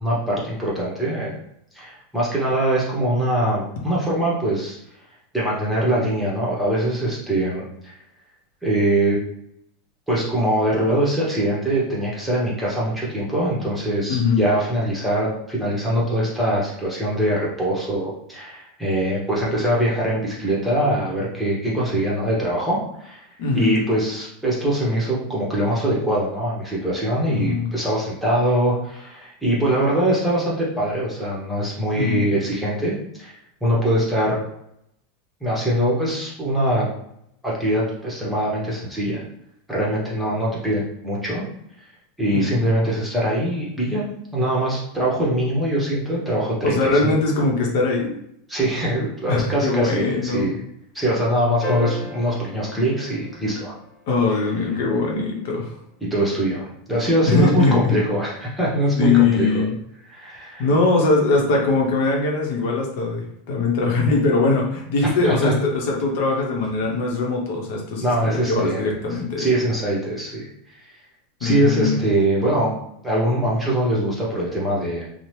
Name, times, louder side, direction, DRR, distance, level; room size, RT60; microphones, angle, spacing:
voice 1, 0.0-1.4 1.7-4.8 5.3-7.9 8.6-9.2 10.1-23.2 23.5-33.3 33.6-34.4 35.4-36.9 37.4-39.2 39.7-41.4 42.2-44.0 44.3-47.1 48.5-50.5 50.9-53.8 56.0-59.6 60.1-60.7 63.9-64.0 65.0-65.5 68.0-68.9 69.4-70.5 70.8-70.9 71.4-72.7 73.0-75.1, right 1 dB, 5° right, -5 dB, 0.9 m, -22 dB
voice 2, 14.1-14.4 23.4-23.8 27.3-27.7 31.9-32.3 42.3-42.6 46.6-48.1 49.3-50.5 54.1-55.7 57.3-57.9 58.9-59.7 60.6-69.4 71.4-72.0, left 3 dB, 65° left, -1 dB, 0.7 m, -21 dB
sound 1, 51.6-54.2 56.4-56.5, left 2 dB, 20° left, 0.7 m, -34 dB
2.8 x 2.0 x 3.1 m, 0.75 s
supercardioid pair, 135°, 0 cm